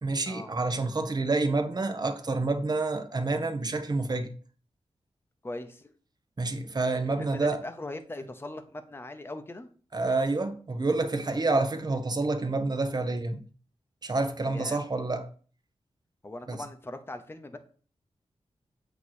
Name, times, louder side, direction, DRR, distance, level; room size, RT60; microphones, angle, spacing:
voice 1, 0.0-4.3 6.4-7.6 9.9-13.5 14.0-15.3 16.5-16.6, right 3 dB, 40° right, 1.1 m, -28 dB
voice 2, 5.4-5.9 7.2-9.7 14.5-14.8 16.2-17.6, left 2 dB, 20° left, 0.8 m, -40 dB
8.4 x 3.0 x 6.3 m
wide cardioid pair, 95°, 11 cm